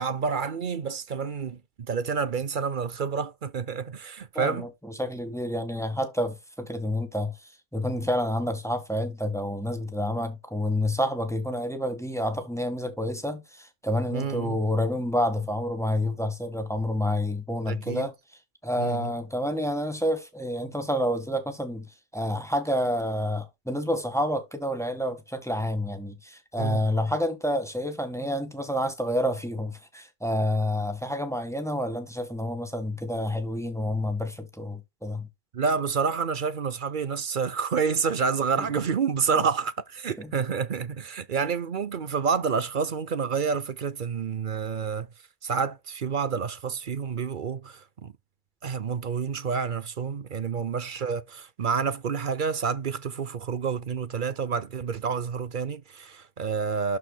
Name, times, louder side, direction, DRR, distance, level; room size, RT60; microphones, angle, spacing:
voice 1, 0.0-4.7 14.1-14.6 17.7-18.1 18.8-19.1 26.6-26.8 35.5-45.1 45.4-48.1 48.6-57.0, right 6 dB, 50° right, 0.7 m, -29 dB
voice 2, 4.3-4.7 5.0-7.4 7.7-18.1 18.6-21.9 22.1-35.3 38.6-38.7 40.2-40.3, left 1 dB, ahead, 1.5 m, -29 dB
12.0 x 4.6 x 2.2 m
omnidirectional pair, 1.5 m